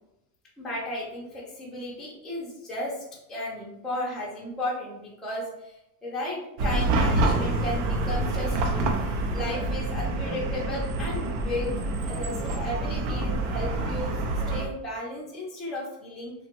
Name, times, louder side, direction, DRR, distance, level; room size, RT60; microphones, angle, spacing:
voice 1, 0.6-8.9 9.3-14.1 14.5-16.3, left 1 dB, ahead, -6 dB, 0.4 m, -34 dB
Chatter / Car passing by / Traffic noise roadway noise, 6.6-14.7, right 2 dB, 70° right, 0.7 m, -27 dB
2.9 x 2.3 x 2.9 m, 0.85 s
supercardioid pair, 135°, 50 cm